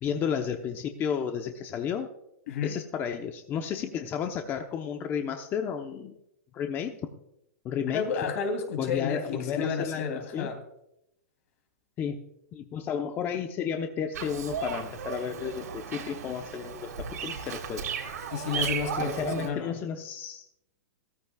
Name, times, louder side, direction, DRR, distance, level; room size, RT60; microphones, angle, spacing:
voice 1, 0.0-2.1 2.6-6.2 6.5-6.9 7.6-8.0 8.8-10.5 12.0-12.2 12.5-17.9 18.9-20.6, left 7 dB, 25° left, 5 dB, 0.9 m, -32 dB
voice 2, 7.9-10.6 18.3-19.7, left 6 dB, 60° left, 5 dB, 3.1 m, -31 dB
Bird vocalization bird call bird song, 14.1-19.5, right 6 dB, 90° right, 3.4 m, -35 dB
16.5 x 14.5 x 2.4 m, 0.81 s
hypercardioid pair, 145°, 9 cm